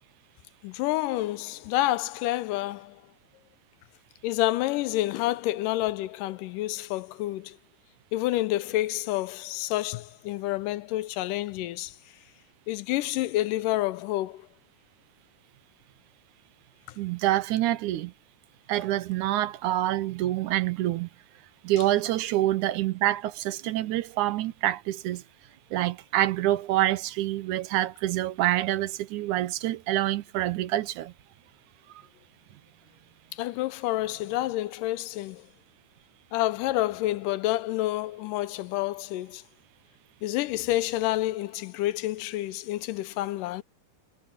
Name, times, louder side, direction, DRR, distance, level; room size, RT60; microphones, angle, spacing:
voice 1, 0.6-3.0 4.2-7.6 8.1-12.0 12.7-14.5 33.3-35.5 36.3-39.4 40.2-43.6, left 16 dB, 80° left, 2.2 m, -28 dB
voice 2, 17.0-18.1 18.7-21.1 21.6-25.2 25.7-31.1, right 14 dB, 75° right, 2.1 m, -26 dB
omnidirectional pair, 3.9 m